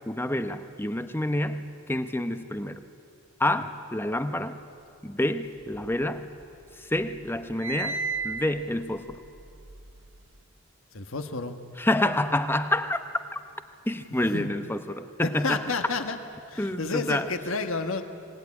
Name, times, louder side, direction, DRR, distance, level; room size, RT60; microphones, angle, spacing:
voice 1, 0.1-2.8 3.4-4.6 5.0-6.3 6.8-9.2 11.8-13.0 13.9-15.7 16.6-17.3, left 1 dB, 10° left, 9 dB, 0.8 m, -28 dB
sound 1, 5.6-6.6 7.0-10.4, right 4 dB, 65° right, 1.1 m, -35 dB
voice 2, 10.9-11.6 14.2-14.5 15.2-16.2 16.5-18.0, left 4 dB, 65° left, 7 dB, 1.4 m, -30 dB
25.0 x 20.0 x 9.7 m, 2.5 s
head